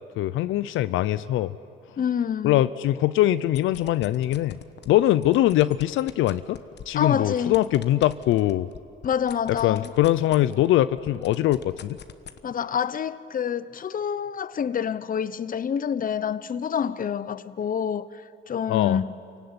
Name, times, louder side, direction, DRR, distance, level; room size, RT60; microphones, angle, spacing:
voice 1, 0.2-1.5 2.4-4.6 4.9-6.6 6.9-8.7 9.5-12.0 18.7-19.0, left 14 dB, 85° left, 0.6 m, -22 dB
voice 2, 2.0-2.6 6.9-7.6 9.0-9.9 12.4-19.2, left 8 dB, 45° left, 0.8 m, -27 dB
sound 1, 3.4-4.9 5.2-10.7 11.0-12.4, left 9 dB, 60° left, 1.2 m, -42 dB
28.5 x 17.5 x 9.7 m
cardioid pair, 90°, 20 cm